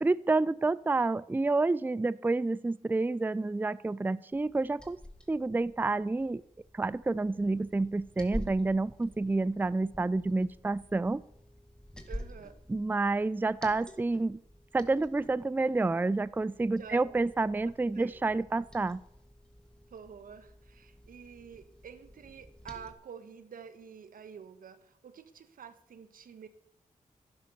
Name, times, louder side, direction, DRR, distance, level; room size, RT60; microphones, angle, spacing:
voice 1, 0.0-5.0 5.3-6.4 6.7-11.2 12.7-14.4 14.7-19.0, right 3 dB, 15° right, 19 dB, 0.4 m, -29 dB
Liquid, 4.3-22.9, equal, 5° left, 2.2 m, -48 dB
voice 2, 12.1-12.6 16.7-18.2 19.9-26.5, right 7 dB, 85° right, 12 dB, 1.3 m, -49 dB
11.5 x 11.0 x 6.8 m, 0.77 s
cardioid pair, 75°, 14 cm